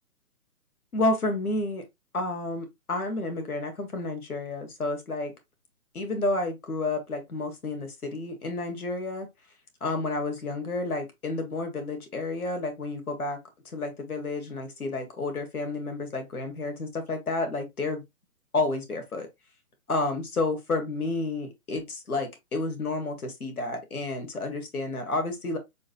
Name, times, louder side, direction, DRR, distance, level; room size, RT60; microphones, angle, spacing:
voice 1, 0.9-1.8 2.1-5.3 5.9-9.3 9.8-13.4 13.6-18.0 18.5-19.3 19.9-25.6, left 2 dB, 65° left, 1.5 m, -30 dB
6.1 x 2.8 x 2.3 m
figure-of-eight pair, 135°, 47 cm